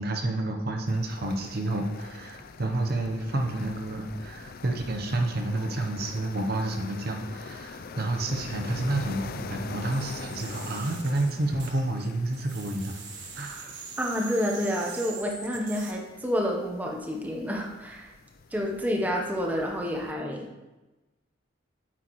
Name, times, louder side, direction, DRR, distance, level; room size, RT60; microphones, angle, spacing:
voice 1, 0.0-12.9 13.4-13.8, right 2 dB, 50° right, 3 dB, 0.8 m, -30 dB
sound 1, 0.9-20.1, left 4 dB, 50° left, 0.4 m, -44 dB
sound 2, 9.9-12.1 12.3-15.9, right 5 dB, 70° right, 1.3 m, -43 dB
voice 2, 14.0-18.1 18.5-20.5, equal, 10° right, 0 dB, 0.8 m, -29 dB
9.0 x 8.1 x 3.1 m, 1.1 s
head